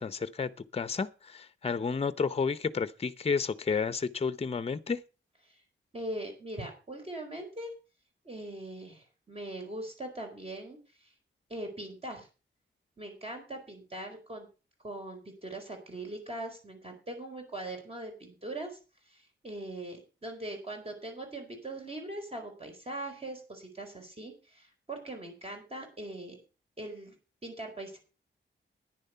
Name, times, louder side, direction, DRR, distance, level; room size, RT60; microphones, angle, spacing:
voice 1, 0.0-5.0, left 5 dB, 30° left, 0.7 m, -31 dB
voice 2, 5.9-7.7 8.2-10.8 11.5-12.3 13.0-14.5 14.8-18.8 19.1-26.4 26.8-27.1 27.4-28.0, right 1 dB, 30° right, 4.6 m, -41 dB
10.5 x 10.0 x 5.6 m
wide cardioid pair, 115°, 20 cm